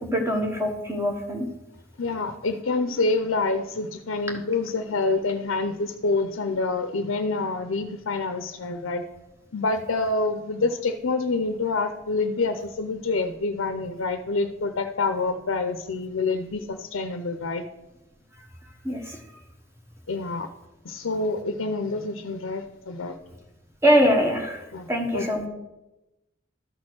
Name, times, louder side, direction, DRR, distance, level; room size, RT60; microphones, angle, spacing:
voice 1, 0.0-1.5 18.8-19.2 23.8-24.6 24.9-25.5, equal, 15° right, 2 dB, 1.3 m, -23 dB
voice 2, 2.0-9.0 9.5-17.6 20.1-20.5 20.8-23.2 24.7-24.9 25.1-25.3, left 3 dB, 75° left, 7 dB, 0.6 m, -27 dB
12.5 x 4.3 x 6.2 m, 0.98 s
head